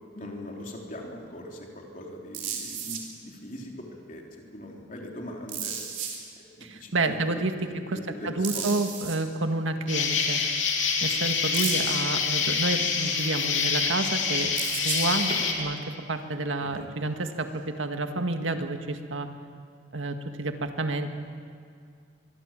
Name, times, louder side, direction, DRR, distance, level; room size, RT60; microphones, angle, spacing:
voice 1, 0.1-5.8 6.4-8.7 16.6-16.9, left 1 dB, 40° left, 0 dB, 3.7 m, -41 dB
sound 1, 2.3-3.0 5.5-6.2 8.4-9.2 11.5-12.0 14.6-15.7 18.1-18.2, right 7 dB, 40° right, 3.7 m, -33 dB
voice 2, 6.6-8.0 8.2-10.4 11.0-15.8 16.1-19.3 19.9-21.1, right 2 dB, 85° right, 6 dB, 1.8 m, -29 dB
Insect, 9.9-15.5, left 5 dB, 75° left, 3.4 m, -26 dB
24.5 x 22.5 x 7.6 m, 2.3 s
head